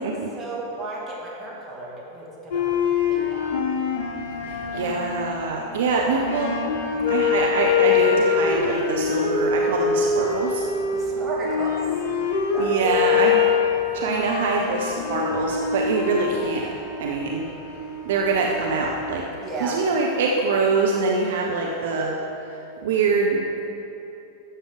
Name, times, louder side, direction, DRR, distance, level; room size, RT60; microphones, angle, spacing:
voice 1, 0.3-2.8 3.1-3.6 4.6-5.0 10.9-11.9 12.5-13.2 19.4-19.8, right 2 dB, 20° right, -5 dB, 2.6 m, -34 dB
sound 1, 2.5-19.2, left 5 dB, 50° left, 1.1 m, -24 dB
voice 2, 4.4-6.6 7.1-10.7 12.6-13.5 13.9-17.5 18.1-19.3 19.6-23.6, right 4 dB, 55° right, 0 dB, 0.9 m, -24 dB
12.5 x 7.4 x 5.1 m, 2.9 s
figure-of-eight pair, 90°, 0 cm